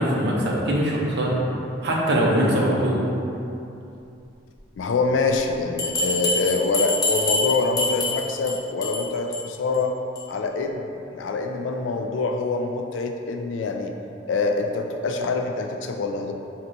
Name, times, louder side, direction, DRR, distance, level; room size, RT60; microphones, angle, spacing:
voice 1, 0.0-1.4 1.8-3.1, right 1 dB, 60° right, -3 dB, 0.6 m, -22 dB
voice 2, 4.8-9.9 10.3-13.9 14.3-16.3, left 3 dB, 80° left, 4 dB, 0.3 m, -25 dB
Bell, 5.8-8.5 8.8-9.0 9.3-9.4 9.7-9.8 10.1-10.2, left 2 dB, 20° left, 0.6 m, -25 dB
4.4 x 2.8 x 2.6 m, 2.7 s
head